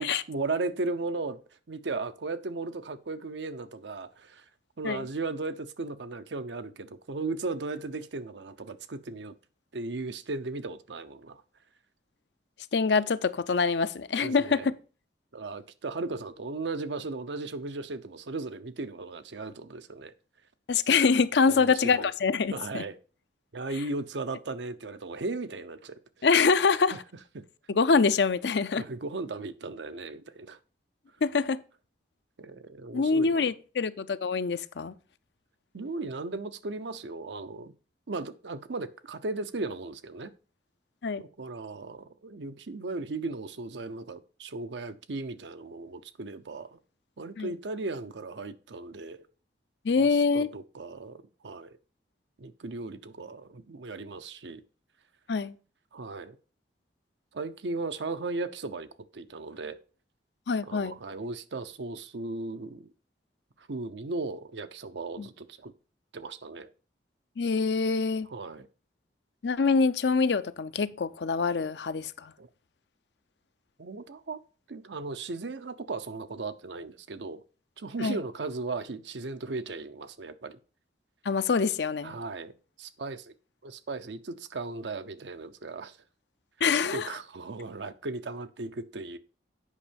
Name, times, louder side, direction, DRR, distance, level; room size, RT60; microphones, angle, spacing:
voice 1, 0.0-1.4 1.7-4.4 4.8-9.3 9.7-11.4 14.2-14.7 15.3-20.1 21.5-22.1 22.5-23.0 23.5-26.3 26.9-27.0 27.3-27.4 28.7-30.6 32.4-33.5 35.7-37.7 38.1-40.3 41.2-46.8 47.2-49.3 50.0-51.8 52.4-54.6 55.9-56.4 57.3-58.9 59.1-59.8 60.6-62.9 63.6-65.7 66.1-66.7 68.3-68.7 72.4-72.5 73.8-74.4 74.7-77.4 77.8-80.6 82.0-82.5 82.8-83.3 83.6-86.0 86.9-89.2, right 3 dB, 85° right, 0.7 m, -36 dB
voice 2, 12.7-14.7 20.7-22.8 26.2-27.0 27.7-28.8 31.2-31.6 32.9-34.9 41.0-41.2 47.4-47.5 49.8-50.5 55.3-55.5 60.5-61.0 65.2-65.3 67.4-68.3 69.4-72.3 78.0-78.2 81.2-82.2 86.6-87.1, left 5 dB, 70° left, 0.5 m, -25 dB
8.4 x 5.4 x 5.1 m
head